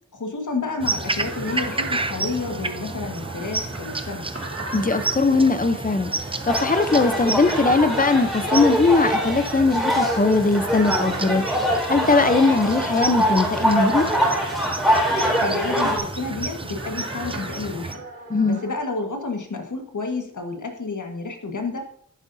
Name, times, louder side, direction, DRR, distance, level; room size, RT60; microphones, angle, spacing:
voice 1, 0.1-4.3 15.4-18.0 18.4-21.8, left 3 dB, 60° left, 3 dB, 1.7 m, -30 dB
sound 1, 0.7-18.8, right 2 dB, 45° right, 1.8 m, -38 dB
sound 2, 0.8-18.0, right 2 dB, 15° right, 0.6 m, -31 dB
voice 2, 4.7-6.1 6.4-11.4 11.9-14.1 18.3-18.6, left 3 dB, 25° left, 10 dB, 0.7 m, -20 dB
sound 3, 6.5-16.0, equal, ahead, 3.0 m, -23 dB
11.0 x 9.6 x 2.7 m, 0.64 s
wide cardioid pair, 100°, 34 cm